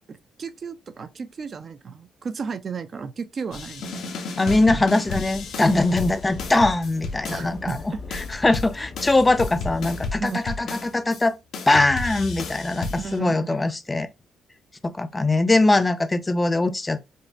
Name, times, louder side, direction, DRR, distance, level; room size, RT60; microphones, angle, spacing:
voice 1, 0.1-4.3 4.7-4.8 5.7-6.0 7.3-8.0 10.2-10.4 12.9-13.6, right 6 dB, 45° right, 0.5 m, -34 dB
sound 1, 3.5-7.8 8.1-11.2 11.5-13.2, left 4 dB, 75° left, 0.9 m, -33 dB
voice 2, 4.4-7.8 8.1-11.4 11.7-14.1 14.8-17.0, left 2 dB, 20° left, 0.4 m, -21 dB
sound 2, 5.0-10.1, left 3 dB, 45° left, 0.9 m, -39 dB
5.2 x 2.1 x 2.6 m
cardioid pair, 90°, 0 cm